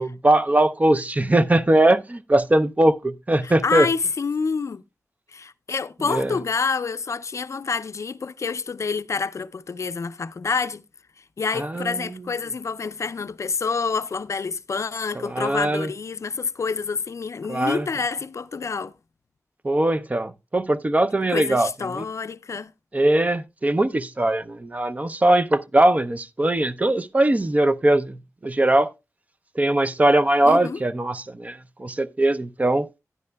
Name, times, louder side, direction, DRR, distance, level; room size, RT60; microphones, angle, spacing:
voice 1, 0.0-3.9 6.1-6.4 11.5-12.2 15.2-15.9 17.5-17.9 19.6-22.1 22.9-28.9 29.6-32.9, right 1 dB, 25° right, 0.5 m, -21 dB
voice 2, 3.4-4.8 5.3-10.8 11.4-18.9 21.3-22.7 30.5-30.8, left 5 dB, 60° left, 0.4 m, -27 dB
11.0 x 10.5 x 2.2 m
wide cardioid pair, 115°, 6 cm